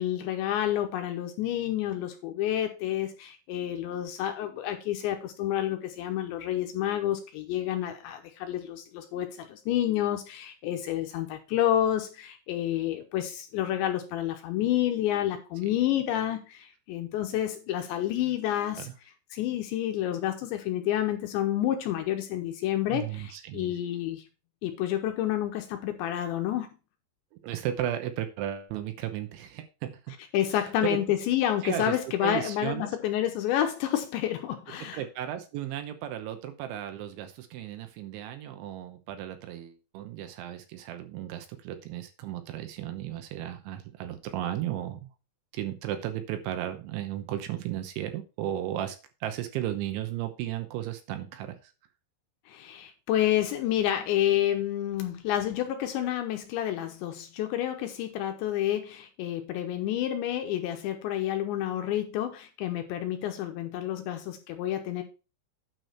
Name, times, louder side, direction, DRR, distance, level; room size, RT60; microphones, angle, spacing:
voice 1, 0.0-18.9 19.3-24.2 24.6-26.7 30.3-35.0 52.5-65.0, left 12 dB, 75° left, 2.9 m, -29 dB
voice 2, 22.9-23.8 27.4-30.1 30.5-31.0 31.6-32.9 34.8-45.1 45.5-51.7, right 11 dB, 75° right, 3.0 m, -35 dB
9.2 x 6.2 x 4.4 m
omnidirectional pair, 5.9 m